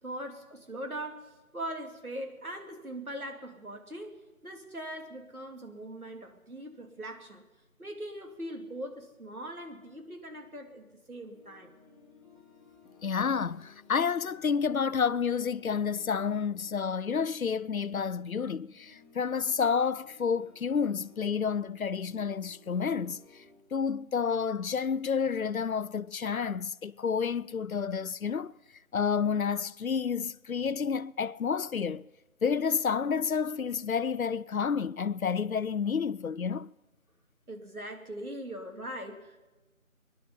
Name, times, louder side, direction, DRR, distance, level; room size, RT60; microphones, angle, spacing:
voice 1, 0.0-7.4 7.8-11.7 37.5-39.5, right 1 dB, 85° right, 2.8 m, -41 dB
sound 1, 11.3-23.6, left 5 dB, 25° right, 2.9 m, -58 dB
voice 2, 13.0-23.2 23.7-28.5 28.9-32.1 32.4-36.7, left 6 dB, 75° left, 0.6 m, -30 dB
22.0 x 11.0 x 5.6 m
figure-of-eight pair, 180°, 42 cm